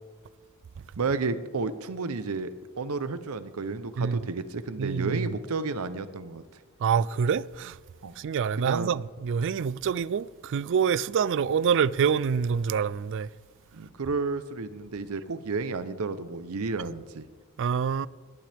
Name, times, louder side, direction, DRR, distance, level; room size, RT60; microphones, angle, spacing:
voice 1, 1.0-6.4 8.0-8.1 8.6-8.9 13.7-17.3, right 4 dB, 85° right, 0.7 m, -32 dB
voice 2, 4.8-5.3 6.8-7.8 8.2-13.3 17.6-18.1, right 7 dB, 60° right, 0.3 m, -26 dB
19.0 x 12.0 x 3.5 m
head